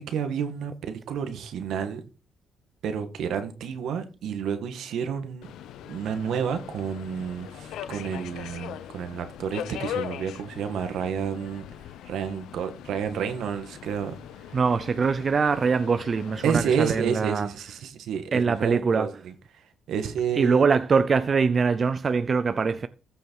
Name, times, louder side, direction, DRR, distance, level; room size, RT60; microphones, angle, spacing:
voice 1, 0.0-2.0 2.8-5.5 5.8-11.7 12.0-14.1 14.5-14.6 16.4-19.4 19.9-20.6, right 7 dB, 75° right, 1.9 m, -30 dB
Subway metro underground, 5.4-17.0, left 10 dB, 85° left, 0.7 m, -40 dB
voice 2, 14.5-17.5 18.3-19.1 20.4-22.9, right 5 dB, 40° right, 0.6 m, -23 dB
14.5 x 6.4 x 4.8 m
cardioid pair, 90°, 0 cm